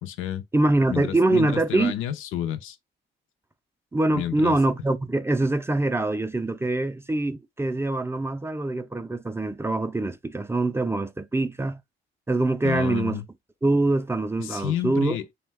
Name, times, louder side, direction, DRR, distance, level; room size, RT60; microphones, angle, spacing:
voice 1, 0.0-0.4 0.9-2.8 4.1-4.6 12.6-13.2 14.4-15.3, left 11 dB, 85° left, 0.5 m, -30 dB
voice 2, 0.5-1.9 3.9-11.8 12.3-13.2 13.6-15.2, right 2 dB, 15° right, 0.3 m, -24 dB
2.6 x 2.1 x 3.3 m
cardioid pair, 90°, 20 cm